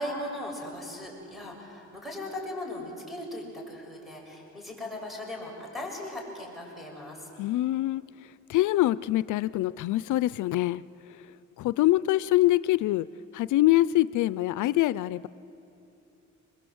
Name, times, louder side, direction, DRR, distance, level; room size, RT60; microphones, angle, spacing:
voice 1, 0.0-7.3, left 1 dB, ahead, 0 dB, 6.7 m, -38 dB
voice 2, 7.4-8.0 8.5-10.8 11.6-13.1 13.3-15.3, left 16 dB, 80° left, 17 dB, 0.5 m, -24 dB
26.0 x 22.0 x 7.9 m, 2.9 s
cardioid pair, 90°, 30 cm